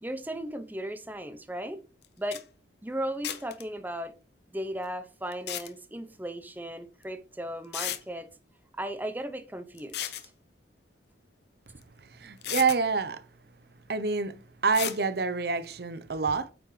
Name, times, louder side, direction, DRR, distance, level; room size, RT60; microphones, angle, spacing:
voice 1, 0.0-1.8 2.2-2.4 2.8-4.1 4.5-8.3 8.8-10.1, right 1 dB, 10° right, 0.7 m, -36 dB
sound 1, 2.0-2.1 2.3-2.4 3.2-3.6 5.3-5.7 7.0-7.1 7.7-8.0 9.8-10.3 11.8-11.9 12.4-12.8 14.7-15.0, left 11 dB, 65° left, 0.8 m, -34 dB
voice 2, 12.2-13.2 13.9-16.5, right 4 dB, 55° right, 0.7 m, -27 dB
8.6 x 5.8 x 3.2 m
head